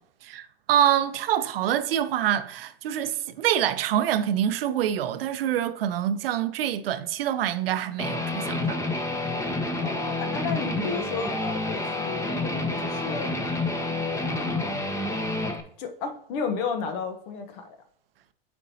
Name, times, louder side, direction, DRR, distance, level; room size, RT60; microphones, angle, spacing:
voice 1, 0.2-8.8, right 10 dB, 75° right, 0.7 m, -26 dB
Guitar, 8.0-15.6, left 2 dB, 10° left, 0.9 m, -29 dB
voice 2, 9.8-13.3 14.3-14.9 15.8-17.8, left 5 dB, 55° left, 1.1 m, -33 dB
8.6 x 4.5 x 2.8 m
hypercardioid pair, 100°, 29 cm